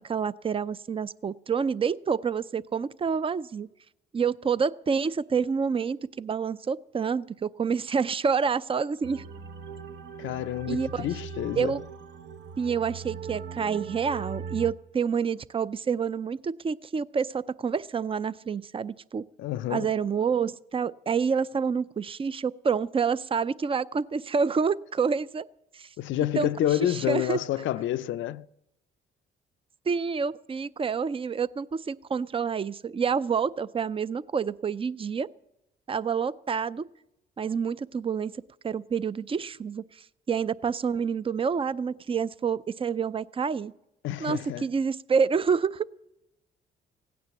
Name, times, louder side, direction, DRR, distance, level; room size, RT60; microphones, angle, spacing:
voice 1, 0.0-3.7 4.1-9.3 10.7-11.1 11.6-11.8 12.6-19.2 19.7-25.5 25.7-25.9 26.4-26.5 26.8-27.4 29.9-35.3 35.9-36.9 37.4-39.8 40.3-43.7 44.2-45.9, right 6 dB, 25° right, 0.5 m, -28 dB
sound 1, 9.0-14.7, right 6 dB, 65° right, 1.0 m, -39 dB
voice 2, 10.2-11.7 19.4-19.9 26.0-28.5 44.0-44.7, left 13 dB, 75° left, 0.5 m, -29 dB
16.5 x 9.5 x 7.1 m
cardioid pair, 90°, 20 cm